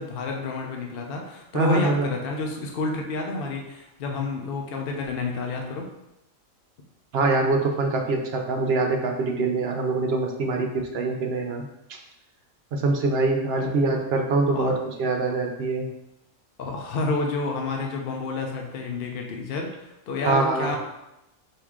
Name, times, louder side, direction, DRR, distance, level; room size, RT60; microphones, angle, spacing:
voice 1, 0.0-5.9 10.4-10.6 13.6-13.7 14.5-14.8 15.3-15.4 16.6-20.8, left 3 dB, 55° left, 1 dB, 0.7 m, -30 dB
voice 2, 1.5-2.1 7.1-11.6 12.7-15.9 20.2-20.8, right 3 dB, 60° right, 3 dB, 0.7 m, -24 dB
4.6 x 2.7 x 3.6 m, 0.91 s
omnidirectional pair, 1.4 m